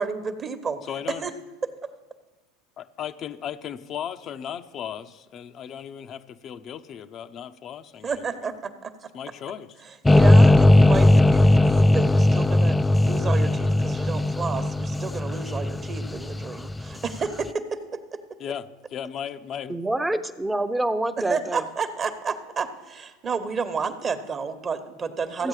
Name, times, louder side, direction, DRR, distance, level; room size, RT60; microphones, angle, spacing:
voice 1, 0.0-0.8 1.1-1.3 1.6-1.7 8.0-9.1 9.8-18.2 21.2-25.5, right 5 dB, 30° right, 1.1 m, -31 dB
voice 2, 0.9-1.3 2.8-8.1 8.4-8.5 9.1-9.7 18.4-19.8, left 9 dB, 45° left, 0.6 m, -36 dB
sound 1, 10.1-17.2, left 1 dB, 10° left, 0.3 m, -18 dB
voice 3, 19.7-21.6 25.4-25.5, right 1 dB, 10° right, 0.7 m, -26 dB
14.0 x 8.1 x 4.9 m
hypercardioid pair, 90°, 0 cm